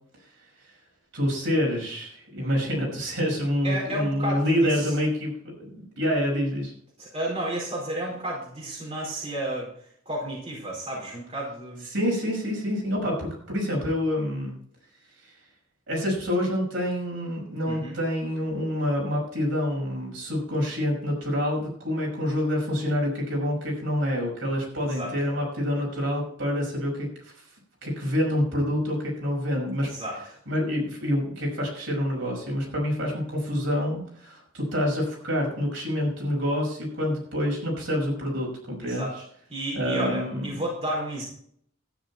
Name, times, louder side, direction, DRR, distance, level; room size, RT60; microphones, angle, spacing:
voice 1, 1.1-6.7 11.9-14.6 15.9-27.1 27.8-29.9 30.5-39.2 39.7-40.6, equal, 60° right, -1 dB, 5.8 m, -27 dB
voice 2, 3.6-4.9 7.0-9.7 10.1-11.9 17.7-18.0 24.9-25.1 29.8-30.2 38.8-39.1 39.5-41.2, right 1 dB, 30° right, -4 dB, 4.4 m, -32 dB
13.0 x 10.0 x 4.3 m, 0.64 s
head